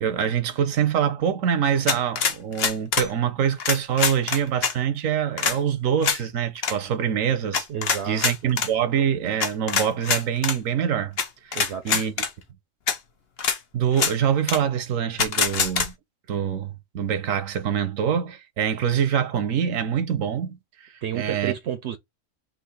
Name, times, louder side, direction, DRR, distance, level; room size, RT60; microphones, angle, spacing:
voice 1, 0.0-7.7 8.1-11.2 11.4-12.1 13.7-15.9 16.3-21.5, right 8 dB, 85° right, 1.1 m, -25 dB
sound 1, 1.9-3.1 3.6-4.7 5.4-5.6 6.0-6.2 6.6-6.7 7.5-8.7 9.4-10.6 11.2-11.3 11.5-12.3 12.9-13.0 13.4-13.6 13.9-14.1 14.5-14.6 15.2-15.9, left 6 dB, 55° left, 1.0 m, -24 dB
voice 2, 7.7-8.5 11.5-12.2 21.0-22.0, right 9 dB, 65° right, 0.8 m, -31 dB
3.8 x 2.8 x 4.0 m
omnidirectional pair, 1.3 m